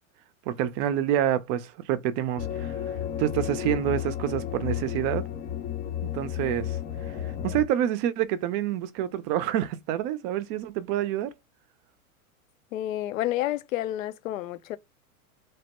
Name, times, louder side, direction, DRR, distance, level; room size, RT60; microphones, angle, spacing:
voice 1, 0.5-5.3 6.0-6.8 7.1-11.3, right 11 dB, 35° right, 0.5 m, -28 dB
sound 1, 2.4-7.6, left 10 dB, 20° left, 0.4 m, -32 dB
voice 2, 12.7-14.8, left 14 dB, 65° left, 0.6 m, -30 dB
3.1 x 2.1 x 2.9 m
hypercardioid pair, 110°, 43 cm